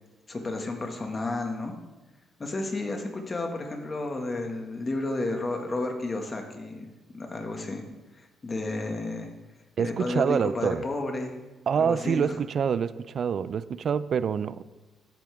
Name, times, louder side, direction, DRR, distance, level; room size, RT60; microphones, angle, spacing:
voice 1, 0.3-1.8 2.4-6.9 7.1-7.8 8.2-9.3 9.8-11.3 11.7-12.4, left 2 dB, 30° left, 3 dB, 1.9 m, -32 dB
voice 2, 9.8-10.8 11.7-14.6, right 7 dB, 55° right, 16 dB, 0.4 m, -26 dB
13.0 x 8.8 x 3.6 m, 1.2 s
cardioid pair, 90°, 0 cm